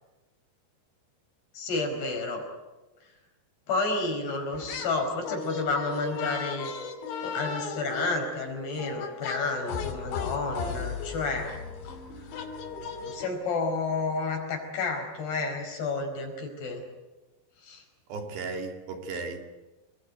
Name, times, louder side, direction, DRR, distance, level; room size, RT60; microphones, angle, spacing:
voice 1, 1.5-2.4 3.7-6.7 7.2-11.5 13.0-16.8 17.6-17.8, left 3 dB, 65° left, 6.9 m, -30 dB
sound 1, 4.5-5.0 5.2-13.3, left 6 dB, 85° left, 5.0 m, -36 dB
voice 2, 18.1-19.4, right 4 dB, 75° right, 4.6 m, -35 dB
28.5 x 21.0 x 9.4 m
omnidirectional pair, 5.0 m